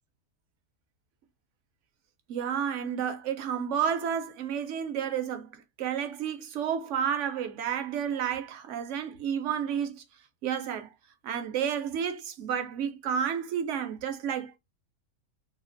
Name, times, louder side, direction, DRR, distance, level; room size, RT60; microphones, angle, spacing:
voice 1, 2.3-10.0 10.4-10.9 11.2-14.6, right 8 dB, 65° right, 0.8 m, -31 dB
3.0 x 2.4 x 2.5 m
omnidirectional pair, 1.6 m